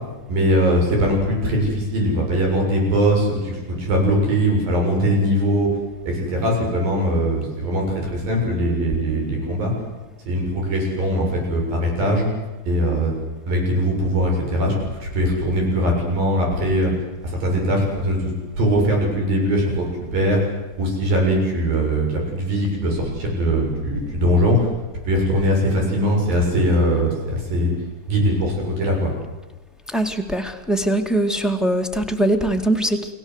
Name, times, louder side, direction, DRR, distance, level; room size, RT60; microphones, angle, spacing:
voice 1, 0.3-5.7 6.1-9.7 10.3-12.3 12.7-13.1 13.5-14.8 15.0-16.9 17.2-18.2 18.6-20.4 20.8-24.7 25.0-27.7 28.1-29.1, equal, 70° right, 0 dB, 9.0 m, -21 dB
voice 2, 29.9-33.0, right 1 dB, ahead, 2 dB, 1.0 m, -21 dB
30.0 x 19.0 x 8.2 m, 1.2 s
omnidirectional pair, 4.2 m